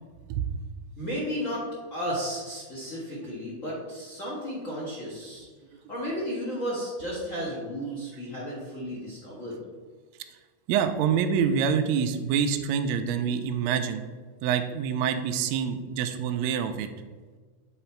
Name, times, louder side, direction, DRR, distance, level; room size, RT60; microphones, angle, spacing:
voice 1, 1.0-1.6 1.9-5.5 5.9-9.6, equal, 45° left, -6 dB, 1.1 m, -33 dB
voice 2, 10.7-14.0 14.4-16.9, right 7 dB, 80° right, 7 dB, 1.7 m, -26 dB
8.0 x 4.0 x 4.4 m, 1.4 s
omnidirectional pair, 3.6 m